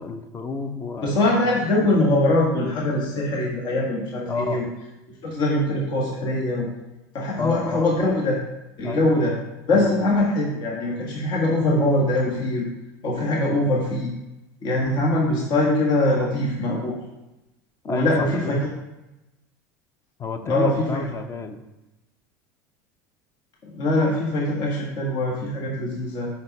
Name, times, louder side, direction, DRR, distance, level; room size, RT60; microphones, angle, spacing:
voice 1, 0.0-1.2 1.4-1.6 4.3-4.7 7.4-7.9 8.8-9.2 9.7-9.9 17.9-18.6 20.2-21.6, left 4 dB, 30° left, 9 dB, 0.8 m, -30 dB
voice 2, 1.0-4.6 5.2-6.7 7.1-8.4 8.8-9.3 9.7-12.7 13.0-14.1 14.6-17.0 17.9-18.6 20.4-21.0 23.6-26.3, left 1 dB, 50° left, -3 dB, 1.7 m, -22 dB
5.5 x 5.4 x 5.3 m, 0.98 s
supercardioid pair, 105°, 10 cm